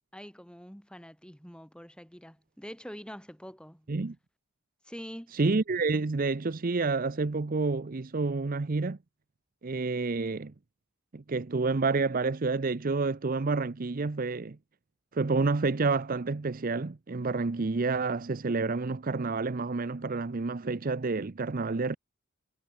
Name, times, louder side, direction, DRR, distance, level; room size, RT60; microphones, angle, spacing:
voice 1, 0.1-3.9 4.8-5.4, equal, 5° left, 5.1 m, -45 dB
voice 2, 5.3-9.0 9.6-10.5 11.1-14.6 15.1-22.0, right 3 dB, 40° right, 0.6 m, -29 dB
head